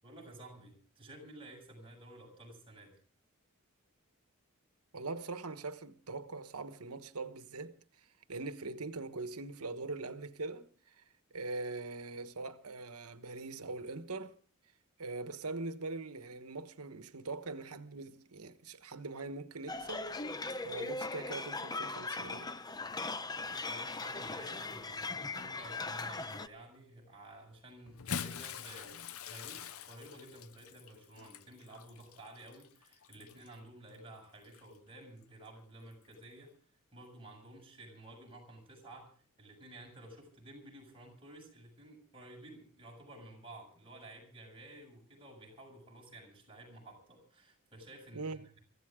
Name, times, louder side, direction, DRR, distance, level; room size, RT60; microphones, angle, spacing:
voice 1, 0.0-3.0 23.6-36.5 36.9-48.6, right 1 dB, 25° right, 7.2 m, -53 dB
voice 2, 4.9-11.0 11.3-14.3 15.0-20.1 20.6-22.5 48.1-48.5, right 3 dB, 85° right, 1.3 m, -42 dB
sound 1, 19.7-26.5, left 3 dB, 20° left, 0.7 m, -39 dB
Bathtub (filling or washing) / Splash splatter, 27.9-33.5 34.4-34.6 36.1-36.2, left 7 dB, 70° left, 0.7 m, -44 dB
24.0 x 15.5 x 3.7 m
head